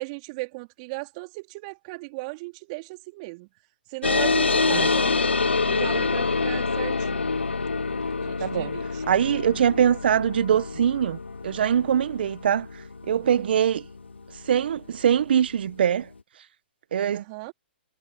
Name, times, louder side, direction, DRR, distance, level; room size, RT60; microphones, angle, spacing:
voice 1, 0.0-3.5 3.9-5.3 5.7-7.2 8.2-9.0 13.2-13.5 17.1-17.5, right 26 dB, 40° right, 4.2 m, -37 dB
sound 1, 4.0-15.0, left 4 dB, 90° left, 0.9 m, -26 dB
voice 2, 8.4-8.8 9.1-12.7 13.1-13.8 14.5-16.1 16.9-17.2, right 9 dB, 65° right, 1.6 m, -23 dB
figure-of-eight pair, 120°, 6 cm